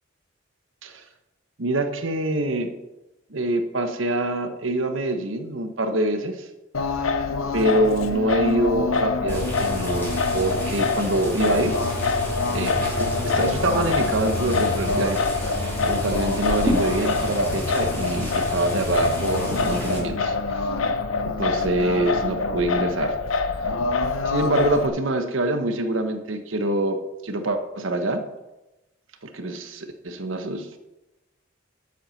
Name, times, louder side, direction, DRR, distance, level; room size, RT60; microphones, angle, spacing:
voice 1, 1.6-2.7 3.3-6.5 7.5-11.7 12.5-15.5 15.8-20.7 21.2-23.1 24.2-28.2 29.2-30.8, right 1 dB, 70° right, 7 dB, 1.1 m, -25 dB
Singing, 6.7-24.9, left 4 dB, 90° left, 0.8 m, -25 dB
sound 1, 9.3-20.0, left 1 dB, 10° left, 3.0 m, -30 dB
8.3 x 7.9 x 5.8 m, 0.99 s
head